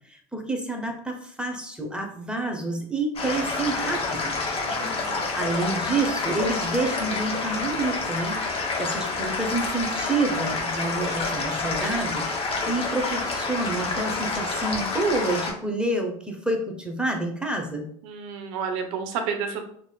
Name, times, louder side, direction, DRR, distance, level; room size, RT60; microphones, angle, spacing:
voice 1, 0.1-4.3 5.3-8.4 8.8-17.9, right 2 dB, 5° right, 2 dB, 0.8 m, -28 dB
sound 1, 3.2-15.5, left 3 dB, 30° left, 1.1 m, -28 dB
voice 2, 4.6-5.3 18.0-19.6, right 6 dB, 65° right, 5 dB, 0.7 m, -31 dB
3.3 x 2.8 x 2.3 m, 0.64 s
hypercardioid pair, 75°, 19 cm